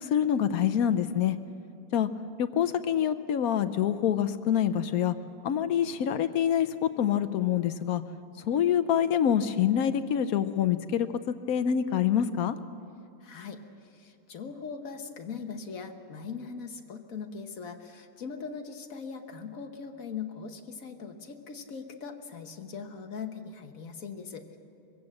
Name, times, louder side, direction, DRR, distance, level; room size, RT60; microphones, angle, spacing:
voice 1, 0.0-1.4 1.9-2.1 2.4-5.1 5.4-8.0 8.4-12.5, left 9 dB, 75° left, 10 dB, 0.8 m, -26 dB
voice 2, 13.2-13.6 13.9-24.6, left 5 dB, 45° left, 5 dB, 1.4 m, -40 dB
22.5 x 15.5 x 7.7 m, 2.5 s
omnidirectional pair, 2.3 m